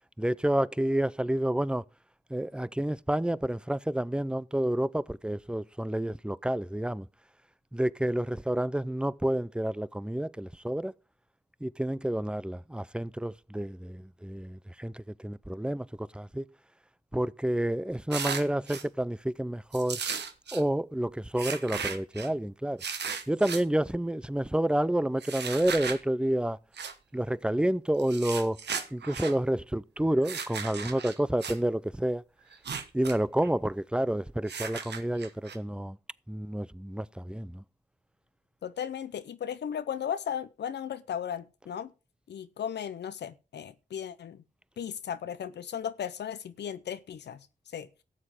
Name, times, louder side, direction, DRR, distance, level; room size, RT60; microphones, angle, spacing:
voice 1, 0.2-1.8 2.3-7.1 7.7-10.9 11.6-16.4 17.1-20.0 20.5-22.8 23.3-26.6 27.1-28.6 28.9-32.2 32.9-36.0 36.3-37.6, right 1 dB, 5° right, 0.5 m, -29 dB
sound 1, 18.1-18.8 19.7-20.6 21.4-22.3 22.8-23.6 25.2-26.0 26.7-26.9 28.0-29.3 30.2-31.6 32.5-33.2 33.4-33.5 34.5-35.6, right 6 dB, 80° right, 1.1 m, -36 dB
voice 2, 38.6-41.9 42.3-44.4 44.8-47.5 47.7-47.9, left 9 dB, 90° left, 0.7 m, -36 dB
13.0 x 7.6 x 5.0 m
cardioid pair, 40°, 17 cm